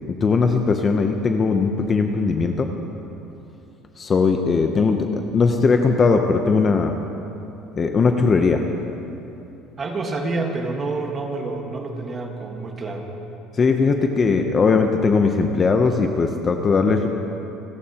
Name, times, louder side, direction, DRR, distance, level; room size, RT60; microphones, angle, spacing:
voice 1, 0.2-2.7 4.0-5.1 5.3-6.9 7.8-8.6 13.6-17.1, left 4 dB, 20° left, 5 dB, 0.6 m, -19 dB
voice 2, 9.8-13.1, right 3 dB, 20° right, 2 dB, 1.4 m, -28 dB
29.5 x 14.5 x 2.8 m, 2.9 s
cardioid pair, 175°, 0 cm